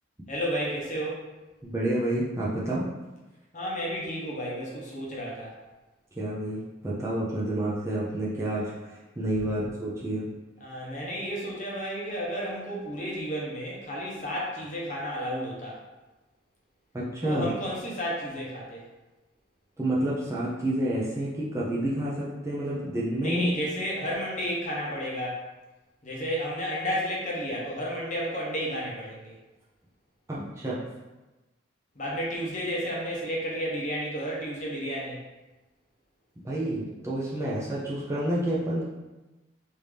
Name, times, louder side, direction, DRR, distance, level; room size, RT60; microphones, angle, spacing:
voice 1, 0.3-1.3 3.5-5.6 9.4-9.6 10.6-15.8 17.2-18.8 23.2-25.4 26.0-29.4 31.9-35.2, equal, 40° left, -4 dB, 0.8 m, -32 dB
voice 2, 1.6-2.9 6.2-10.3 16.9-17.5 19.8-23.5 30.3-30.8 36.4-38.9, right 1 dB, 15° right, -7 dB, 0.5 m, -29 dB
3.4 x 2.7 x 3.2 m, 1.1 s
head